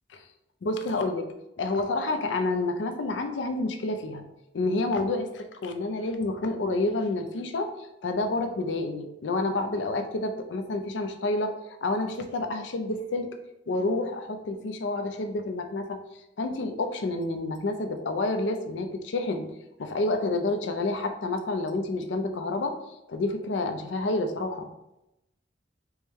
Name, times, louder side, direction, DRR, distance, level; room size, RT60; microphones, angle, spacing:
voice 1, 0.6-1.3 1.6-4.2 4.5-11.5 11.8-13.3 13.7-16.0 16.4-19.5 19.8-22.8 23.1-24.7, left 2 dB, 80° left, 7 dB, 0.5 m, -29 dB
4.6 x 2.1 x 3.4 m, 0.90 s
head